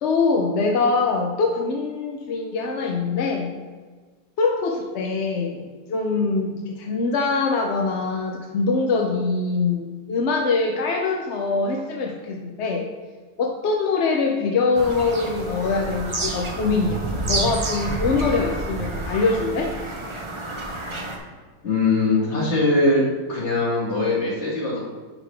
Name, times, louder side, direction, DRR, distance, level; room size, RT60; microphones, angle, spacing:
voice 1, 0.0-3.5 4.4-12.9 13.4-17.0 17.3-19.7, left 4 dB, 60° left, 2 dB, 0.8 m, -23 dB
Bird vocalization bird call bird song, 14.7-21.2, right 2 dB, 30° right, 0.5 m, -29 dB
voice 2, 21.6-23.0 23.3-24.8, left 2 dB, 45° left, -5 dB, 2.3 m, -21 dB
9.6 x 4.8 x 3.4 m, 1.4 s
omnidirectional pair, 1.7 m